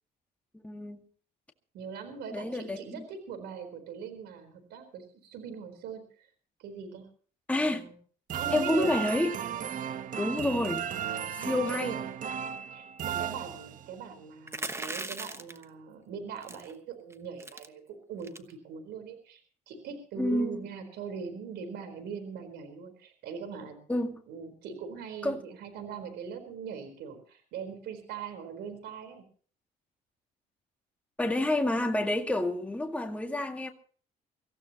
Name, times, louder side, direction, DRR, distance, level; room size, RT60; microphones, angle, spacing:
voice 1, 0.5-1.0 2.3-3.0 7.5-7.9 8.5-9.3 10.2-10.9 11.3-12.0 20.2-20.7 23.9-24.1 25.2-25.4 31.2-33.7, left 1 dB, 10° left, 2.0 m, -29 dB
voice 2, 1.7-6.3 6.6-7.1 7.5-7.9 8.3-8.9 11.4-12.0 12.7-19.4 19.7-23.8 24.3-29.2, right 6 dB, 80° right, 4.3 m, -41 dB
sound 1, 8.3-14.0, right 9 dB, 50° right, 1.2 m, -35 dB
sound 2, 14.5-15.6 16.4-16.7 17.1-17.2 17.4-17.7 18.2-18.5, right 2 dB, 15° right, 1.2 m, -38 dB
24.5 x 15.5 x 3.0 m
cardioid pair, 110°, 17 cm